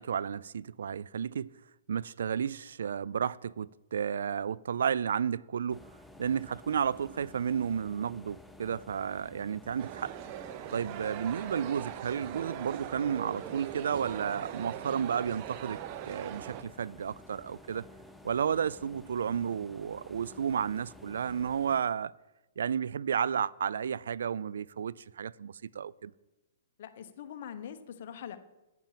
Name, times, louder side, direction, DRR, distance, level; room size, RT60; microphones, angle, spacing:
voice 1, 0.0-1.5 1.9-5.8 6.2-10.1 10.7-15.8 16.1-17.9 18.2-22.1 22.6-26.1, right 7 dB, 80° right, 0.3 m, -32 dB
sound 1, 5.7-21.8, left 1 dB, ahead, 0.6 m, -53 dB
sound 2, 9.8-16.6, right 11 dB, 40° right, 0.7 m, -41 dB
voice 2, 26.8-28.4, left 9 dB, 55° left, 1.1 m, -43 dB
9.1 x 8.8 x 7.5 m
hypercardioid pair, 145°, 0 cm